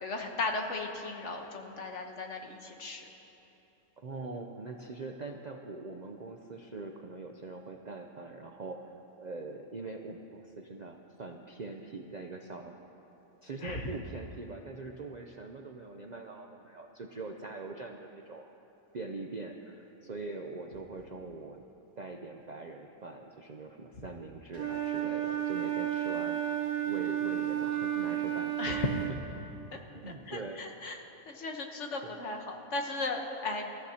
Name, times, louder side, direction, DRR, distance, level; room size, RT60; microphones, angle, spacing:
voice 1, 0.0-3.1 13.6-13.9 28.6-29.0 29.7-29.8 30.3-31.0 31.2-33.6, left 3 dB, 55° left, 3 dB, 1.4 m, -36 dB
voice 2, 4.0-8.8 9.2-12.7 13.4-18.5 18.9-21.6 22.0-26.4 26.8-29.2 29.9-30.6 32.0-32.1, right 3 dB, 50° right, 3 dB, 0.5 m, -43 dB
Wind instrument woodwind instrument, 24.5-29.2, right 11 dB, 75° right, 1.4 m, -32 dB
25.5 x 14.0 x 2.9 m, 3.0 s
omnidirectional pair, 1.5 m